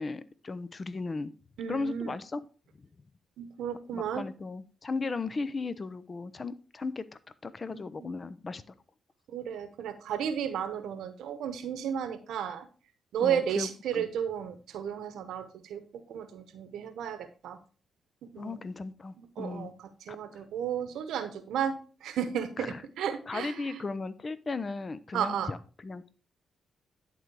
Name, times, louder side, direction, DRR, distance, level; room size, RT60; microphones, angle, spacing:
voice 1, 0.0-1.3 1.7-2.4 3.9-7.0 7.4-8.7 13.2-14.1 18.4-19.7 20.1-20.4 22.6-22.8 23.3-26.1, left 3 dB, 40° left, 15 dB, 0.6 m, -36 dB
voice 2, 1.6-2.2 3.4-4.2 7.7-8.1 9.3-12.7 13.1-15.8 16.1-17.6 18.3-18.6 19.2-19.7 20.1-23.8 25.1-25.5, right 8 dB, 80° right, 11 dB, 0.9 m, -33 dB
11.0 x 3.9 x 4.7 m, 0.37 s
supercardioid pair, 55°, 0 cm